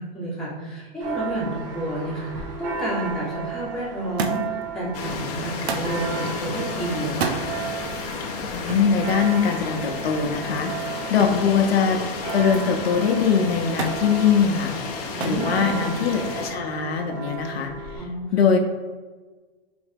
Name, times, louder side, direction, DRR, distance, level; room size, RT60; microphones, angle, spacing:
voice 1, 0.0-7.4 11.1-11.2 15.1-15.7 17.9-18.4, right 1 dB, ahead, -9 dB, 1.3 m, -30 dB
Church bell, 1.0-18.0, right 5 dB, 35° right, 0.9 m, -35 dB
Thump thud, 4.2-4.7 5.7-6.0 7.1-7.4 8.7-8.9 11.2-11.5 11.9-12.4 13.8-14.1 15.2-15.5 16.4-16.9 17.9-18.0, right 5 dB, 85° right, 0.6 m, -29 dB
sound 1, 4.9-16.5, left 4 dB, 40° left, 0.6 m, -32 dB
voice 2, 8.5-12.0 12.3-14.7 15.2-17.7 18.3-18.6, left 6 dB, 75° left, 4 dB, 0.7 m, -22 dB
3.6 x 3.5 x 3.4 m, 1.3 s
hypercardioid pair, 135°, 31 cm